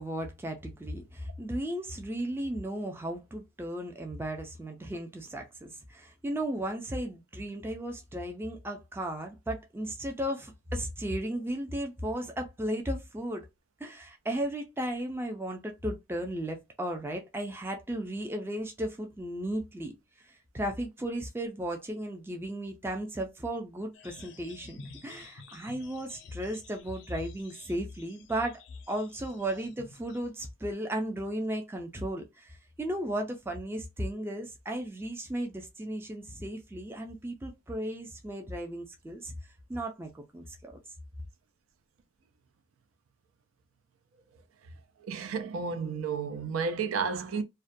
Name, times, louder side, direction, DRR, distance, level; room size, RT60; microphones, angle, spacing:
voice 1, 0.0-13.5 13.8-28.6 28.9-39.3 39.7-40.7, right 1 dB, 10° right, 0.3 m, -35 dB
sound 1, 23.9-30.2, left 4 dB, 60° left, 0.4 m, -48 dB
voice 2, 45.0-47.4, right 5 dB, 85° right, 0.4 m, -32 dB
2.3 x 2.1 x 2.5 m
head